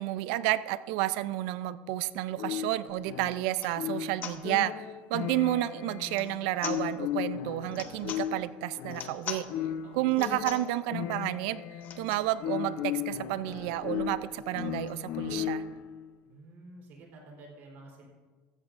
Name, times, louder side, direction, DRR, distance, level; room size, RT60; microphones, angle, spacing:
voice 1, 0.0-9.5 9.9-11.6 12.0-15.6, right 15 dB, 80° right, 15 dB, 0.5 m, -31 dB
sound 1, 2.4-15.9, left 10 dB, 60° left, 0.8 m, -36 dB
sound 2, 2.9-3.0 3.5-3.8 4.2-4.4 6.0-6.3 6.6-6.8 7.7-8.2 8.9-9.4 10.1-10.7 11.8-12.3 12.8-12.9 13.1-13.2 13.5-15.0, left 8 dB, 45° left, 1.1 m, -42 dB
voice 2, 9.8-10.2 16.2-18.1, right 2 dB, 55° right, 0 dB, 3.8 m, -50 dB
15.0 x 13.5 x 2.6 m, 1.4 s
cardioid pair, 140°, 4 cm